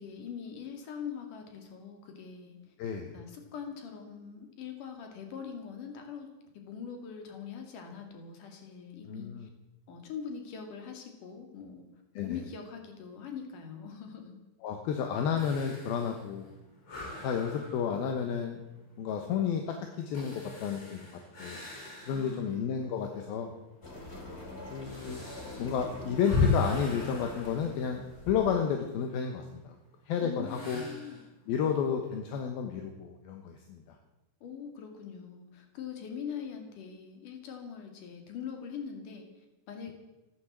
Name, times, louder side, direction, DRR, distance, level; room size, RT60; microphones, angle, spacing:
voice 1, 0.0-2.8 3.1-6.3 6.5-9.5 9.9-11.8 12.1-14.4 22.1-23.0 30.2-31.2 34.4-39.9, left 7 dB, 50° left, 4 dB, 3.6 m, -42 dB
voice 2, 2.8-3.1 9.1-9.5 12.2-12.4 14.6-16.5 17.2-18.6 19.0-21.0 21.4-21.6 22.0-23.5 24.7-25.2 25.6-29.8 30.1-30.8 31.5-33.8, left 7 dB, 70° left, 4 dB, 2.7 m, -31 dB
sound 1, 15.4-22.6 23.0-23.1 23.8-28.5 30.4-31.3, left 4 dB, 85° left, 10.0 m, -36 dB
sound 2, 23.8-28.6, left 2 dB, 20° left, 1.9 m, -44 dB
15.0 x 12.5 x 7.5 m, 1.0 s
omnidirectional pair, 5.2 m